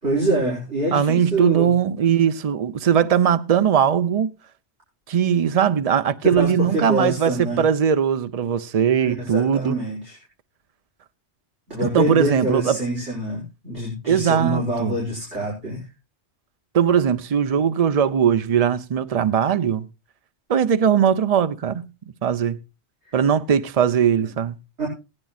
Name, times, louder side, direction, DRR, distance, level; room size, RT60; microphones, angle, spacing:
voice 1, 0.0-1.7 6.2-7.7 9.0-10.2 11.7-15.9 23.0-23.2 24.3-24.4 24.8-24.9, right 1 dB, 85° right, 5.3 m, -25 dB
voice 2, 0.9-4.3 5.1-9.8 11.8-12.8 14.1-15.0 16.7-19.9 20.5-21.9 22.2-22.6 23.1-24.6, right 8 dB, 40° right, 0.6 m, -20 dB
17.5 x 10.5 x 2.4 m
omnidirectional pair, 1.1 m